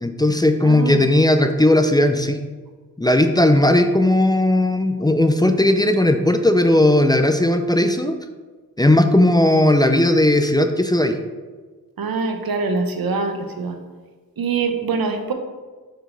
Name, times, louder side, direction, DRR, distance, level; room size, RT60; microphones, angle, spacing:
voice 1, 0.0-2.4 3.0-8.1 8.8-11.2, left 1 dB, 10° left, 7 dB, 0.4 m, -16 dB
voice 2, 0.6-1.0 12.0-13.8 14.4-15.3, right 4 dB, 85° right, 5 dB, 0.8 m, -24 dB
6.5 x 5.1 x 3.8 m, 1.4 s
wide cardioid pair, 75°, 35 cm